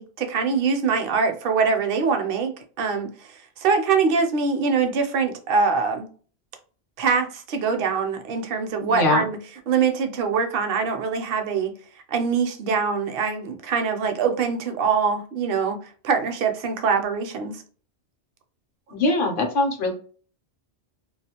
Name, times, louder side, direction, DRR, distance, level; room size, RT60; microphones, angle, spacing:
voice 1, 0.0-6.1 7.0-9.4 9.7-11.7 12.1-15.8 16.0-17.6, right 5 dB, 60° right, 0.7 m, -23 dB
voice 2, 8.8-9.2 18.9-19.9, left 2 dB, 55° left, 0.8 m, -22 dB
2.3 x 2.3 x 2.8 m
omnidirectional pair, 1.2 m